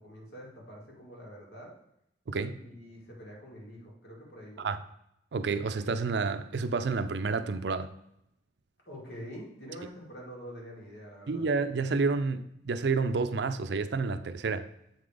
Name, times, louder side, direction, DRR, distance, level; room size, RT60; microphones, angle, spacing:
voice 1, 0.0-1.7 2.5-4.7 8.9-11.5, equal, 70° left, 2.3 m, -46 dB
voice 2, 2.3-2.6 4.6-4.8 5.3-7.9 11.3-14.7, right 4 dB, 70° right, 0.5 m, -29 dB
7.6 x 3.9 x 4.9 m
head